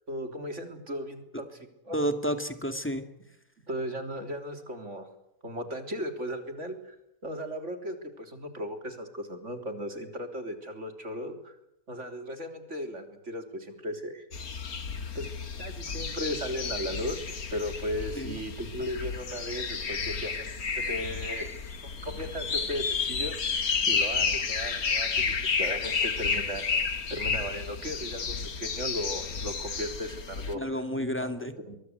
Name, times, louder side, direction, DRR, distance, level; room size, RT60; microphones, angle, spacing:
voice 1, 0.1-1.6 1.8-2.0 3.7-5.1 5.4-7.0 7.2-11.6 11.9-14.3 15.1-15.3 15.6-17.2 17.5-20.5 20.9-21.5 22.0-23.4 23.9-25.1 25.6-26.7 27.1-30.8 31.2-31.8, equal, 55° right, 6 dB, 3.8 m, -36 dB
voice 2, 1.9-3.0 18.1-18.4 30.5-31.5, equal, 10° left, 8 dB, 2.3 m, -30 dB
sound 1, 14.3-30.5, left 5 dB, 85° left, 2.4 m, -31 dB
24.0 x 22.5 x 8.2 m, 0.80 s
omnidirectional pair, 1.5 m